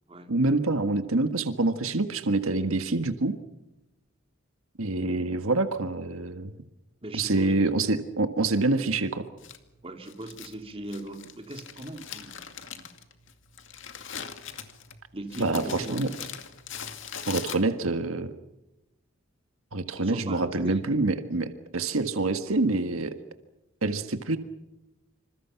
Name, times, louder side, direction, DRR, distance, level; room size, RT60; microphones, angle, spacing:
voice 1, 0.3-3.4 4.8-6.5 7.1-9.3 15.4-16.1 17.3-18.3 19.7-23.1 23.8-24.4, right 2 dB, 80° right, 8 dB, 1.6 m, -26 dB
voice 2, 7.0-7.7 9.8-12.9 15.1-16.3 20.0-20.8, right 1 dB, 25° right, 4 dB, 3.1 m, -39 dB
Crumpling crinkling, 9.4-18.0, left 8 dB, 60° left, 2.4 m, -42 dB
27.5 x 26.5 x 5.9 m, 0.95 s
head